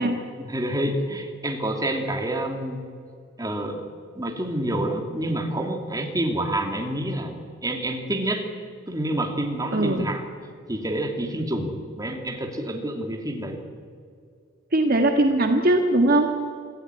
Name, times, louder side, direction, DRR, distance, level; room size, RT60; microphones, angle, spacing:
voice 1, 0.0-2.9 3.4-3.8 4.1-7.3 7.6-8.5 8.9-10.2 10.7-13.6, right 1 dB, 20° right, 4 dB, 2.8 m, -28 dB
voice 2, 9.7-10.1 14.7-16.3, right 1 dB, 50° right, 4 dB, 1.7 m, -20 dB
26.0 x 16.0 x 9.7 m, 2.3 s
head